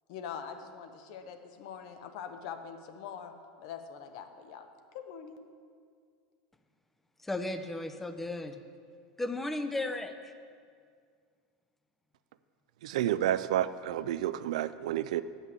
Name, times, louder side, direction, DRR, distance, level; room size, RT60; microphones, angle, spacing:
voice 1, 0.1-3.3 3.6-4.7 4.9-5.4, left 7 dB, 65° left, 7 dB, 0.8 m, -43 dB
voice 2, 7.2-8.6 9.2-10.3, left 2 dB, 5° left, 8 dB, 0.5 m, -35 dB
voice 3, 12.8-15.2, right 12 dB, 85° right, 14 dB, 0.3 m, -30 dB
8.0 x 5.5 x 7.3 m, 2.1 s
supercardioid pair, 140°, 4 cm